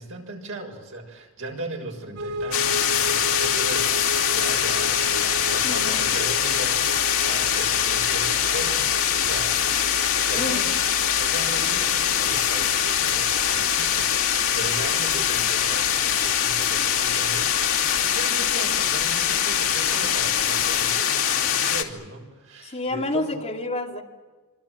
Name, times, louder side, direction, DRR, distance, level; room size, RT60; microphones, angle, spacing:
voice 1, 0.0-9.6 9.9-10.7 11.2-23.3, right 2 dB, 60° right, 2 dB, 6.6 m, -38 dB
sound 1, 2.2-20.9, equal, 90° right, 6.4 m, -37 dB
sound 2, 2.5-21.8, left 9 dB, 70° left, 2.8 m, -23 dB
voice 2, 5.6-6.0 10.3-10.8 11.5-11.7 22.6-24.0, left 2 dB, 30° left, 1 dB, 2.7 m, -29 dB
27.5 x 25.5 x 7.7 m, 1.3 s
head